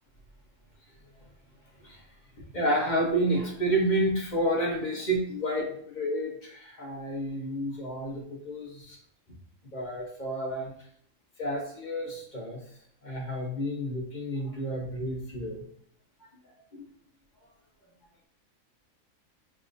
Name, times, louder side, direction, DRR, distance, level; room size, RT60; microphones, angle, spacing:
voice 1, 2.5-9.0 9.7-10.7 11.4-12.6 13.0-15.6 16.7-16.8, right 1 dB, 35° left, -1 dB, 1.0 m, -30 dB
4.9 x 3.4 x 2.6 m, 0.64 s
omnidirectional pair, 1.5 m